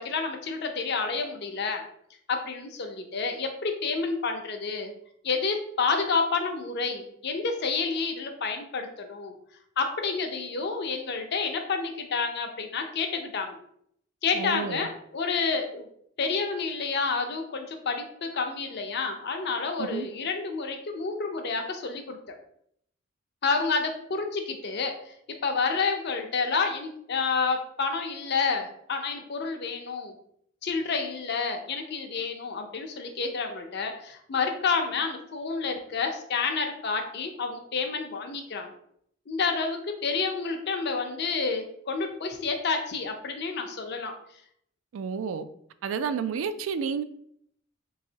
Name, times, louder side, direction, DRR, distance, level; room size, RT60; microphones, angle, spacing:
voice 1, 0.0-1.8 2.3-4.9 5.2-9.3 9.8-13.6 14.2-15.9 16.2-22.2 23.4-25.1 25.4-30.2 30.6-38.7 39.3-44.1, left 4 dB, 55° left, 4 dB, 0.6 m, -29 dB
voice 2, 14.3-14.9 19.8-20.1 44.9-45.4 45.8-47.0, right 6 dB, 80° right, 11 dB, 0.3 m, -30 dB
3.4 x 3.1 x 2.8 m, 0.69 s
head